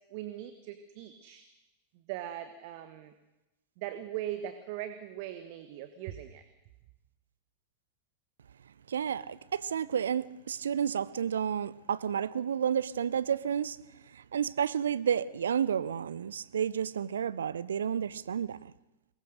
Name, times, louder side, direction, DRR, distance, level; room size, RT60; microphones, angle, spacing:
voice 1, 0.1-1.4 1.9-3.1 3.8-6.4, right 12 dB, 45° right, 9 dB, 1.3 m, -40 dB
voice 2, 8.9-18.6, right 8 dB, 65° right, 19 dB, 0.6 m, -31 dB
23.0 x 19.5 x 6.6 m, 1.0 s
figure-of-eight pair, 90°, 0 cm